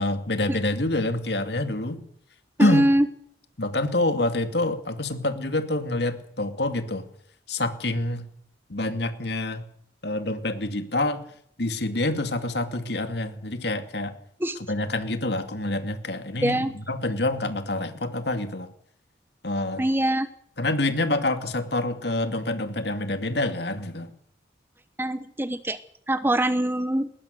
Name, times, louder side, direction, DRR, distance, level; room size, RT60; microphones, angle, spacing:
voice 1, 0.0-2.0 2.6-2.8 3.6-7.1 7.5-8.3 8.7-9.6 10.0-11.3 11.6-14.1 14.7-18.7 19.4-19.8 20.6-24.1, left 2 dB, 60° left, 8 dB, 2.3 m, -27 dB
voice 2, 2.6-3.1 14.4-14.6 16.4-16.7 19.8-20.3 25.0-25.8 26.1-27.1, right 1 dB, 10° right, 12 dB, 0.9 m, -23 dB
20.5 x 20.0 x 6.7 m, 0.67 s
head